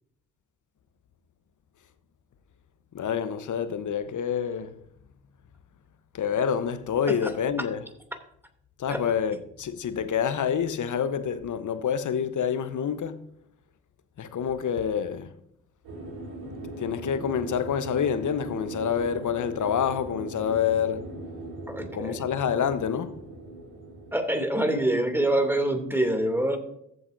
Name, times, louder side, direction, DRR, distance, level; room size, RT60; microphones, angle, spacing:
voice 1, 2.9-4.7 6.1-7.8 8.8-13.3 14.2-15.3 16.8-21.0 21.9-23.2, left 8 dB, 50° left, 1.1 m, -27 dB
sound 1, 15.8-24.2, right 2 dB, 75° right, 4.0 m, -39 dB
voice 2, 21.7-22.2 24.1-26.6, right 1 dB, 5° right, 2.7 m, -25 dB
14.5 x 7.9 x 2.7 m
hypercardioid pair, 45°, 40 cm